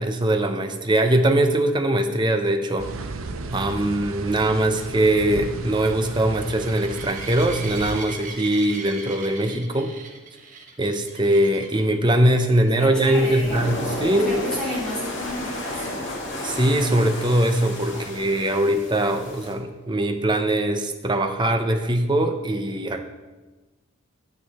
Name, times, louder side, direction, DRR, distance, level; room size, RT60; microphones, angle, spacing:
voice 1, 0.0-2.9 3.5-9.9 10.8-14.4 16.4-23.1, right 1 dB, 20° right, 6 dB, 0.8 m, -21 dB
sound 1, 2.8-8.0, right 3 dB, 70° right, 0.8 m, -34 dB
sound 2, 4.0-12.0 12.5-12.9 13.1-13.2 13.6-13.7 17.3-17.4, right 4 dB, 35° right, 1.3 m, -39 dB
voice 2, 12.5-16.3 17.9-18.1, equal, 5° left, -8 dB, 4.2 m, -33 dB
sound 3, 13.1-19.5, left 1 dB, 55° left, 2.1 m, -32 dB
12.0 x 9.4 x 4.3 m, 1.2 s
head